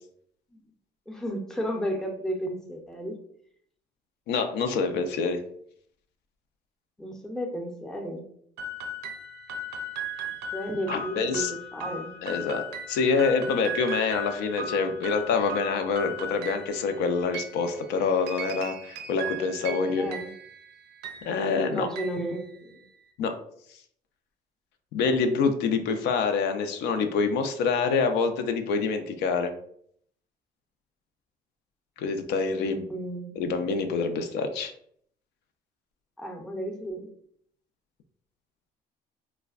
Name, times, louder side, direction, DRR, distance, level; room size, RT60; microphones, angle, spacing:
voice 1, 1.1-3.2 7.0-8.2 10.5-12.1 19.7-20.3 21.7-22.8 32.6-33.3 36.2-37.1, equal, 5° left, 1 dB, 0.5 m, -33 dB
voice 2, 4.3-5.4 10.9-11.5 12.2-12.6 12.9-20.2 21.2-21.9 23.2-23.4 24.9-29.5 32.0-32.9 33.4-34.7, left 4 dB, 80° left, 6 dB, 0.4 m, -26 dB
sound 1, 8.6-23.0, right 1 dB, 85° right, 0.4 m, -38 dB
3.2 x 2.1 x 2.3 m, 0.65 s
cardioid pair, 110°, 17 cm